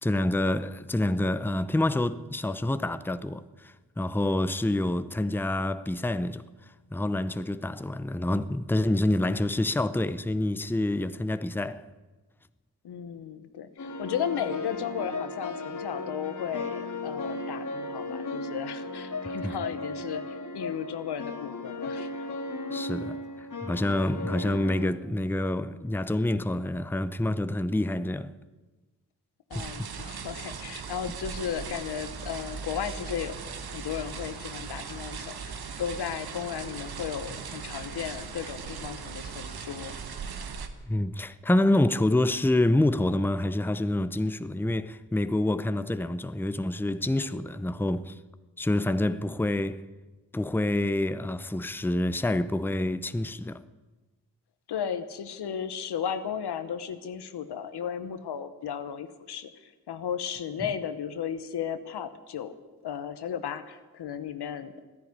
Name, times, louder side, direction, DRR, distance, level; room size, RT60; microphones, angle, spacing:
voice 1, 0.0-6.5 6.9-11.9 19.4-19.5 22.7-28.3 29.5-29.9 40.9-48.2 48.6-49.9 50.3-53.6, left 1 dB, 5° left, 0.7 m, -27 dB
voice 2, 12.8-22.1 29.5-33.4 33.7-39.9 54.7-62.5 62.8-64.8, left 8 dB, 90° left, 1.0 m, -35 dB
sound 1, 13.8-24.9, left 2 dB, 50° left, 1.9 m, -36 dB
sound 2, 29.5-40.7, right 6 dB, 70° right, 1.3 m, -39 dB
13.0 x 10.5 x 9.6 m
cardioid pair, 50°, 39 cm